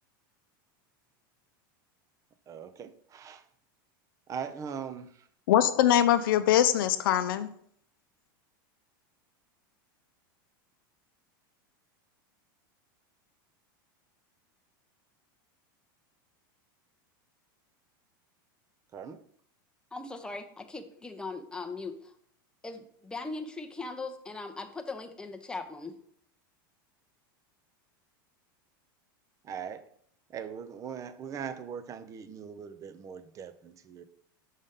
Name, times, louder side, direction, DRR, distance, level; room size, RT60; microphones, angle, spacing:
voice 1, 2.5-3.4 4.3-5.3 18.9-19.2 29.4-29.9 30.3-34.0, right 7 dB, 30° right, 12 dB, 0.6 m, -40 dB
voice 2, 5.5-7.5, left 11 dB, 75° left, 11 dB, 0.5 m, -23 dB
voice 3, 19.9-22.1 22.6-25.9, left 3 dB, 5° left, 4 dB, 0.7 m, -39 dB
5.4 x 5.2 x 3.6 m, 0.64 s
supercardioid pair, 120°, 12 cm